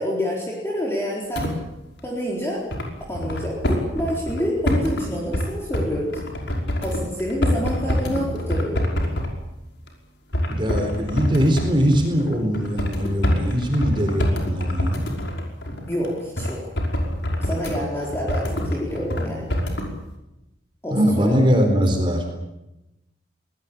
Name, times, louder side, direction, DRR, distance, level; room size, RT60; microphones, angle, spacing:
voice 1, 0.0-1.5 2.0-2.6 3.1-6.2 6.8-8.8 10.8-10.9 15.9-16.6 17.4-19.5 20.8-21.3, equal, 15° left, -4 dB, 4.2 m, -27 dB
sound 1, 1.3-1.5 2.0-2.1 2.7-5.0 5.3-5.5 5.7-9.3 9.9-10.0 10.3-19.2 19.5-19.9, equal, 70° left, 5.6 m, -25 dB
voice 2, 10.5-15.0 20.9-22.3, equal, 25° right, 3 dB, 4.1 m, -21 dB
24.0 x 19.0 x 8.7 m, 0.93 s
head